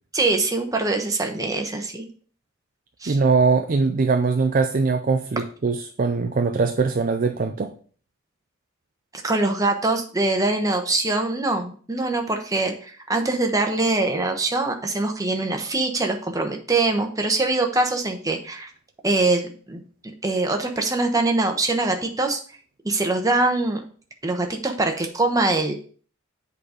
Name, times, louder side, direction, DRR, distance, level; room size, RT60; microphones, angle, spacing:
voice 1, 0.1-2.1 3.0-3.2 9.2-18.7 19.0-19.8 20.2-22.4 22.8-23.8 24.2-25.7, right 2 dB, 15° right, 3 dB, 1.0 m, -23 dB
voice 2, 3.1-7.7, right 4 dB, 40° right, 6 dB, 0.4 m, -21 dB
7.6 x 4.1 x 4.9 m, 0.43 s
head